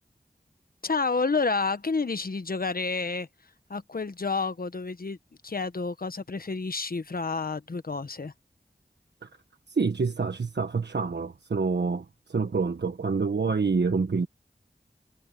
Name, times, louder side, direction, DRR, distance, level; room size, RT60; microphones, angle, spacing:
voice 1, 0.8-3.3 3.7-5.2 5.4-8.3, left 4 dB, 60° left, 1.1 m, -29 dB
voice 2, 9.7-14.3, right 4 dB, 80° right, 1.3 m, -27 dB
wide cardioid pair, 50°, 17 cm